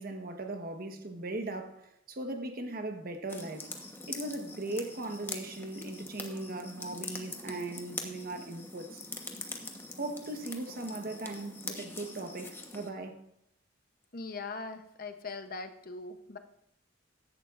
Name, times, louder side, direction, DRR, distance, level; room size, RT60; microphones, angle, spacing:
voice 1, 0.0-3.7 4.1-9.0 10.0-13.2, right 2 dB, 45° right, 1.2 m, -38 dB
sound 1, 3.3-12.9, left 3 dB, 10° left, 1.1 m, -43 dB
voice 2, 14.1-16.4, left 3 dB, 45° left, 0.8 m, -41 dB
15.5 x 11.0 x 2.5 m
head